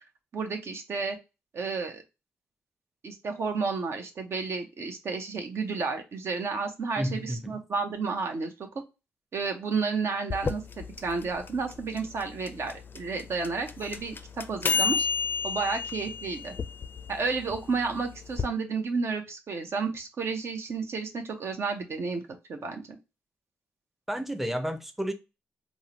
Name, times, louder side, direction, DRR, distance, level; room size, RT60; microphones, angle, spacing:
voice 1, 0.3-1.2 1.5-2.0 3.0-8.5 9.3-15.1 15.4-16.5 17.1-22.2 22.5-23.0, right 4 dB, 60° right, 0.6 m, -31 dB
voice 2, 7.0-7.6 24.1-25.1, equal, 5° right, 0.6 m, -31 dB
sound 1, 10.3-18.5, left 6 dB, 40° left, 0.4 m, -32 dB
3.6 x 2.0 x 2.8 m
supercardioid pair, 50°, 5 cm